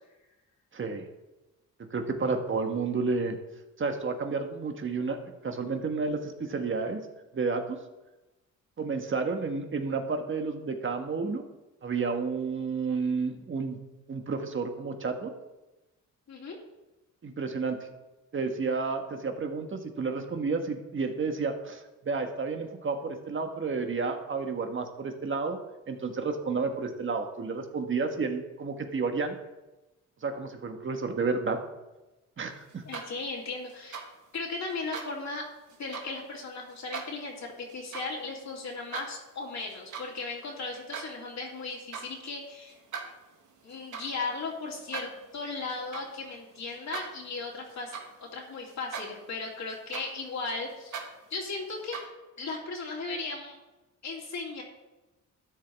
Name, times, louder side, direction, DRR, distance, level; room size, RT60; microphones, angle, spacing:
voice 1, 0.7-1.0 1.9-3.4 3.8-7.1 7.3-7.8 8.8-11.4 11.8-13.8 14.1-15.3 17.2-17.9 18.3-25.6 25.9-29.3 30.2-31.6 32.4-32.8, right 4 dB, 40° right, 5 dB, 1.5 m, -31 dB
sound 1, 32.7-33.3 33.7-34.1 34.7-35.1 35.7-36.1 36.7-37.1 37.7-38.1 38.5-39.1 39.6-40.1 40.4-41.1 41.7-42.1 42.7-48.4 48.7-49.3 49.7-52.0, right 6 dB, 70° right, 1.9 m, -42 dB
voice 2, 32.8-34.0 34.3-35.4 35.8-42.8 43.6-45.1 45.3-47.9 48.2-51.0 51.3-52.0 52.4-53.5 54.0-54.6, left 3 dB, 60° left, -1 dB, 3.0 m, -36 dB
12.5 x 10.0 x 3.6 m, 1.0 s
cardioid pair, 110°, 31 cm